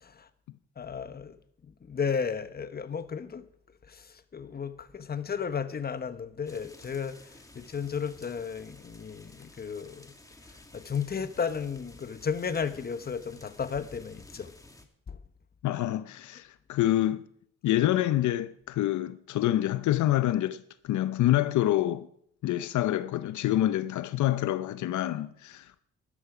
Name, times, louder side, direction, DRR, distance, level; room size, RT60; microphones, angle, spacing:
voice 1, 0.8-1.4 1.6-3.4 3.8-10.1 10.7-14.5 15.1-15.2, left 6 dB, 30° left, 1.0 m, -34 dB
sound 1, 6.5-14.9, left 2 dB, 10° left, 1.8 m, -53 dB
voice 2, 15.6-17.3 17.6-22.1 22.4-25.8, left 14 dB, 75° left, 0.6 m, -27 dB
12.5 x 11.5 x 5.0 m
cardioid pair, 90°, 30 cm